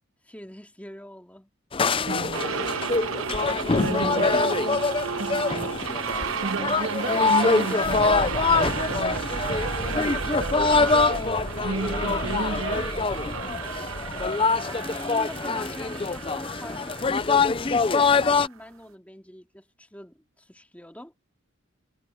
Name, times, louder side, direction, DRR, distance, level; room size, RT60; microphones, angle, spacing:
voice 1, 0.2-1.5 3.6-3.7 6.4-6.9 10.6-10.9 14.7-21.1, equal, 5° left, 2.7 m, -43 dB
sound 1, 1.7-18.5, left 4 dB, 25° left, 0.5 m, -24 dB
voice 2, 1.9-2.9 3.7-4.7 5.2-5.8 6.0-12.9, right 3 dB, 65° right, 1.5 m, -34 dB
sound 2, 2.3-18.6, right 6 dB, 90° right, 1.0 m, -33 dB
sound 3, 7.8-14.3, right 1 dB, 35° right, 1.2 m, -36 dB
head